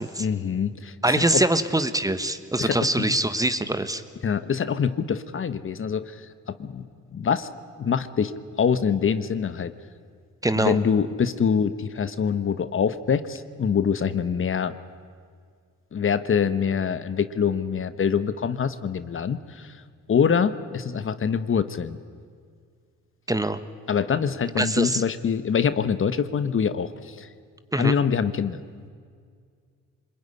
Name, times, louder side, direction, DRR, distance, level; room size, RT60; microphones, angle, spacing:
voice 1, 0.2-1.4 2.6-3.1 4.2-7.5 7.8-9.7 10.6-14.7 15.9-19.8 20.1-22.0 23.9-27.3 27.8-28.6, left 7 dB, 45° left, 13 dB, 1.1 m, -25 dB
voice 2, 1.0-4.0 10.4-10.8 23.3-23.6 24.6-25.0 27.7-28.0, right 1 dB, 10° right, 12 dB, 1.2 m, -23 dB
25.0 x 21.5 x 9.9 m, 2.1 s
cardioid pair, 90°, 30 cm